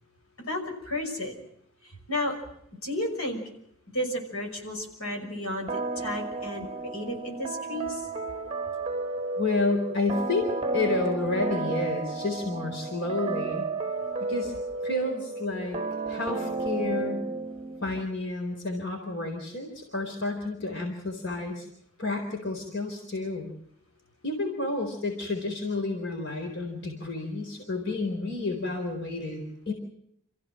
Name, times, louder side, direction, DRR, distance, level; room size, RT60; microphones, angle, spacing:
voice 1, 0.5-1.4 2.1-2.4 2.8-3.4 3.9-8.0, left 1 dB, 80° left, 3 dB, 6.1 m, -32 dB
sound 1, 5.7-18.1, right 3 dB, 25° right, 1.0 m, -33 dB
voice 2, 9.4-13.7 14.2-14.5 14.8-15.8 16.1-17.3 17.8-21.7 22.0-23.5 24.2-29.7, left 2 dB, 55° left, 3 dB, 4.2 m, -30 dB
28.5 x 15.5 x 7.7 m, 0.73 s
head